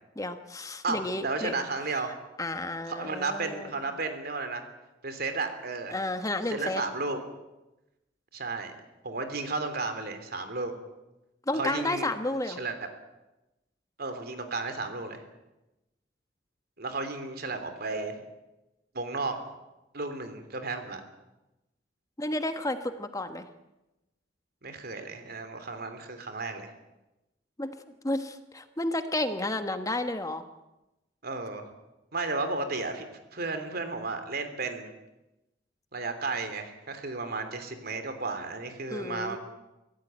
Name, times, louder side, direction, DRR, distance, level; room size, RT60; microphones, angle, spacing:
voice 1, 0.2-1.5 1.9-2.1 2.4-3.7 5.9-6.8 11.5-12.6 22.2-23.4 27.6-27.7 28.0-30.5 38.9-39.4, left 2 dB, 20° left, 8 dB, 1.3 m, -31 dB
voice 2, 0.8-2.2 2.9-4.7 5.0-6.0 6.5-7.2 8.3-8.7 9.0-10.7 11.5-12.1 12.5-12.8 14.0-15.2 16.8-18.1 18.9-19.4 19.9-21.0 24.6-26.7 31.2-31.6 32.1-34.9 35.9-39.4, right 3 dB, 55° right, 8 dB, 3.2 m, -33 dB
24.5 x 16.5 x 9.0 m, 0.98 s
head